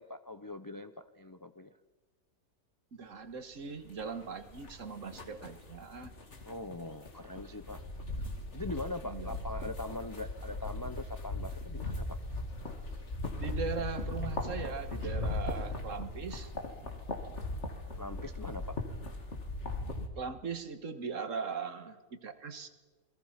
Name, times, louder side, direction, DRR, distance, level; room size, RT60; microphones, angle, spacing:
voice 1, 0.0-1.7 6.4-8.3 8.5-12.2 18.0-18.8, left 2 dB, 25° left, 10 dB, 0.4 m, -42 dB
voice 2, 2.9-6.1 9.0-9.4 13.4-16.5 20.2-22.7, right 5 dB, 55° right, 9 dB, 1.7 m, -39 dB
sound 1, 3.9-20.1, left 2 dB, 45° left, 2.6 m, -39 dB
29.0 x 21.5 x 5.8 m, 1.3 s
omnidirectional pair, 1.7 m